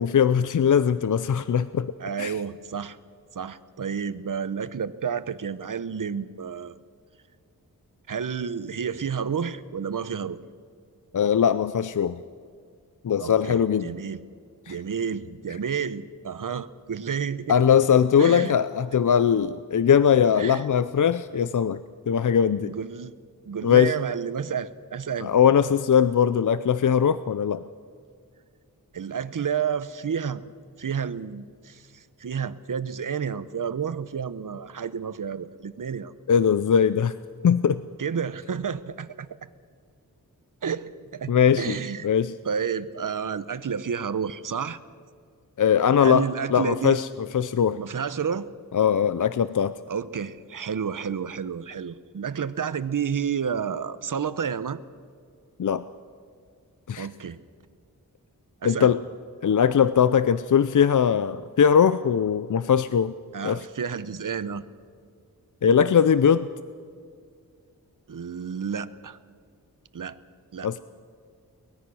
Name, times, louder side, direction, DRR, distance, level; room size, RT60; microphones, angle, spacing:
voice 1, 0.0-1.9 2.2-2.3 11.1-12.2 13.0-13.9 14.7-14.8 17.5-21.8 22.1-22.7 23.6-23.9 25.2-27.6 36.3-37.2 37.4-37.8 41.3-41.8 42.0-42.3 45.6-47.1 47.3-47.8 48.7-49.7 55.6-55.8 56.9-57.1 58.6-59.0 59.4-63.1 63.4-63.6 65.6-66.5 70.6-70.8, left 8 dB, 55° left, 14 dB, 0.6 m, -20 dB
voice 2, 2.0-3.0 3.3-6.8 8.1-10.4 13.2-14.2 14.7-17.5 18.2-18.6 20.4-20.6 22.6-23.1 23.4-25.3 28.9-30.4 30.8-36.1 38.0-39.3 40.6-42.1 42.4-44.8 46.0-47.0 47.8-48.5 49.9-54.8 57.0-57.4 58.6-58.9 63.3-64.6 68.1-69.2 69.9-70.2 70.5-70.8, right 7 dB, 60° right, 14 dB, 1.0 m, -30 dB
23.5 x 20.0 x 6.3 m, 2.1 s
wide cardioid pair, 85°, 36 cm